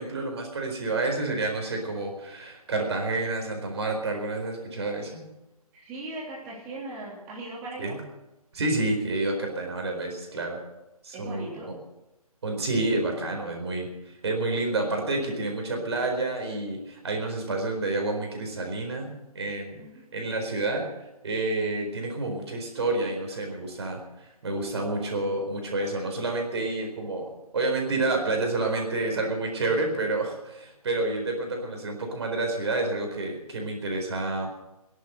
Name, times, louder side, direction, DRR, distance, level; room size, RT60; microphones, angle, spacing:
voice 1, 0.0-5.3 7.8-8.0 8.5-10.6 11.0-11.7 12.4-19.8 20.1-20.9 21.2-34.5, right 2 dB, 45° right, 3 dB, 4.4 m, -29 dB
voice 2, 5.7-8.0 11.1-11.7 19.8-20.0 29.0-29.3, right 2 dB, 15° right, -3 dB, 3.2 m, -39 dB
18.0 x 11.5 x 6.6 m, 0.96 s
figure-of-eight pair, 145°, 19 cm